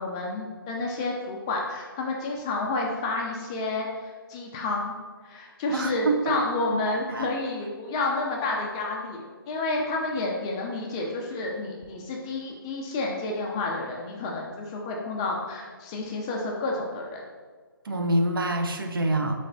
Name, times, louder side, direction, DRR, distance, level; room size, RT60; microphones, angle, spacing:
voice 1, 0.0-5.0 5.2-17.2, left 2 dB, 15° left, -1 dB, 0.3 m, -30 dB
voice 2, 5.7-6.4 6.7-6.8 7.1-7.3 17.8-19.4, right 2 dB, 70° right, 5 dB, 0.6 m, -26 dB
4.3 x 3.2 x 3.9 m, 1.5 s
figure-of-eight pair, 150°, 12 cm